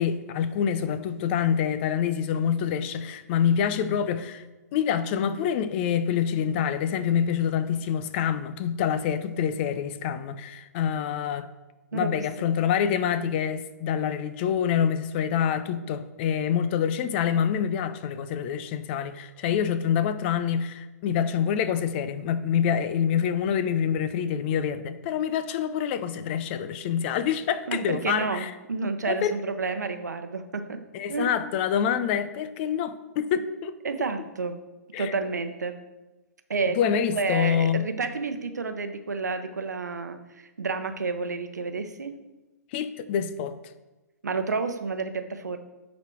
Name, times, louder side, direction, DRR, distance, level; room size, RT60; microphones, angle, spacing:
voice 1, 0.0-4.4 4.7-11.5 11.9-28.5 29.1-29.3 30.9-33.7 34.9-35.1 36.8-37.9 42.7-43.6, left 8 dB, 40° left, 0.6 m, -26 dB
voice 2, 27.7-30.8 31.1-31.3 33.8-34.6 35.0-35.7 36.5-42.1 44.2-45.6, right 4 dB, 85° right, 0.9 m, -30 dB
10.5 x 4.3 x 4.5 m
hypercardioid pair, 125°, 9 cm